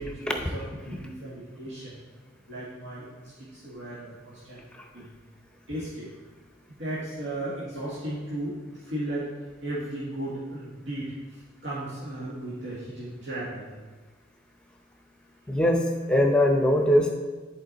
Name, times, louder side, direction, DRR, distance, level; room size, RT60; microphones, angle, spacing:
voice 1, 0.0-2.0 2.5-4.6 4.9-5.1 5.7-6.1 6.7-9.3 9.6-13.8, right 1 dB, 80° right, -9 dB, 1.7 m, -36 dB
voice 2, 15.5-17.2, left 1 dB, 5° left, 3 dB, 0.7 m, -22 dB
10.5 x 4.5 x 4.0 m, 1.3 s
head